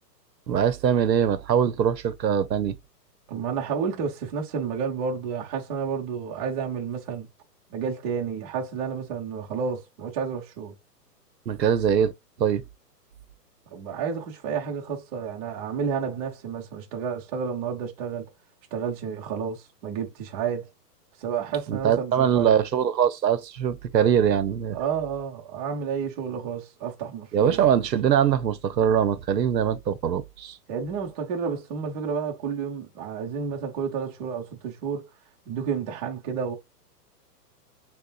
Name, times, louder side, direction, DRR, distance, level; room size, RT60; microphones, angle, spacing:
voice 1, 0.5-2.8 11.5-12.1 12.4-12.6 21.7-24.8 27.3-30.6, right 8 dB, 85° right, 0.9 m, -22 dB
voice 2, 3.3-7.3 7.7-10.7 13.7-18.3 18.7-20.7 21.2-22.5 24.7-27.7 30.7-35.1 35.5-36.5, right 6 dB, 25° right, 1.0 m, -30 dB
6.6 x 2.4 x 2.4 m
hypercardioid pair, 160°, 49 cm